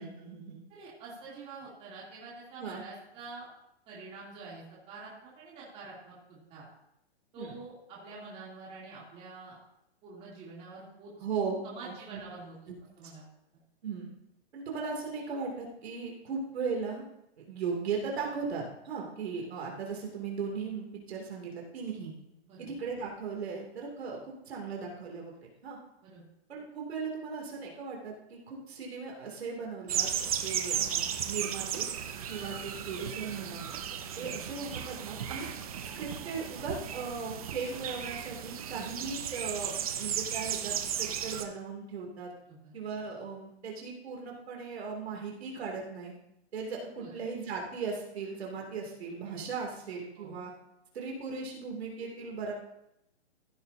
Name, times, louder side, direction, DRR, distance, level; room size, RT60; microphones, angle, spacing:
voice 1, 0.0-0.6 2.6-2.8 7.4-7.5 11.2-11.5 11.8-12.2 13.8-14.1 14.5-17.0 17.4-22.1 22.6-25.3 25.6-25.8 26.5-31.9 32.3-33.7 34.2-35.5 35.8-42.3 42.7-46.1 46.5-50.5 50.9-52.5, right 5 dB, 65° right, -1 dB, 2.9 m, -37 dB
voice 2, 0.7-3.4 3.9-6.6 7.3-9.6 10.0-11.1 11.6-12.5 13.0-13.3 22.5-22.7 26.0-26.2 34.1-34.3 42.5-42.7 47.0-47.2 50.2-50.3, right 3 dB, 20° right, -6 dB, 3.0 m, -47 dB
sound 1, 29.9-41.4, right 9 dB, 35° right, 0.6 m, -35 dB
15.5 x 8.9 x 2.8 m, 0.82 s
hypercardioid pair, 165°, 34 cm